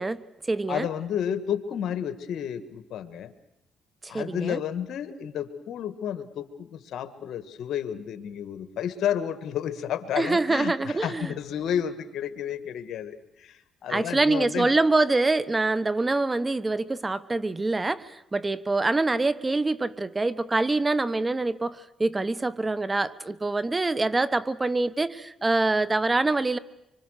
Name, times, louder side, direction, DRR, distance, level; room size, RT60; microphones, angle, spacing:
voice 1, 0.0-0.9 4.0-4.6 10.2-11.3 13.9-26.6, right 2 dB, 20° right, 16 dB, 1.0 m, -25 dB
voice 2, 0.7-3.3 4.1-14.8, left 9 dB, 75° left, 10 dB, 1.7 m, -31 dB
25.5 x 25.0 x 6.6 m, 0.83 s
cardioid pair, 90°, 0 cm